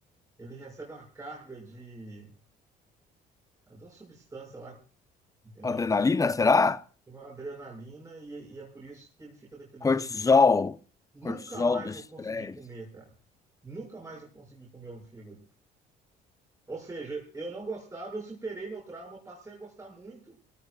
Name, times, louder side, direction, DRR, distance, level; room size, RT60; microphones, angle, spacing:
voice 1, 0.4-2.3 3.7-4.8 5.4-5.9 7.1-10.1 11.1-13.1 13.6-15.4 16.7-20.4, right 3 dB, 20° right, 6.8 m, -42 dB
voice 2, 5.6-6.8 9.8-10.8 11.2-11.9 12.3-12.6, left 4 dB, 20° left, 0.9 m, -23 dB
24.0 x 18.5 x 2.5 m
cardioid pair, 110°, 17 cm